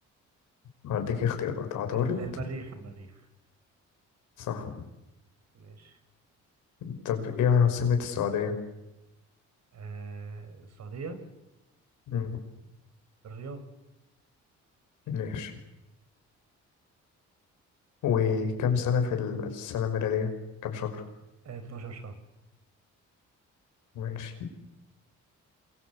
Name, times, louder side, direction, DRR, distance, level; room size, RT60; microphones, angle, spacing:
voice 1, 0.8-2.2 4.4-4.8 6.8-8.6 12.1-12.3 15.1-15.5 18.0-20.3 20.6-21.0 23.9-24.3, left 7 dB, 85° left, 5 dB, 5.7 m, -28 dB
voice 2, 1.9-3.3 5.5-6.0 9.7-11.2 13.2-13.6 21.4-22.2, right 4 dB, 60° right, 9 dB, 5.2 m, -40 dB
28.0 x 23.0 x 8.3 m, 0.96 s
cardioid pair, 90°, 30 cm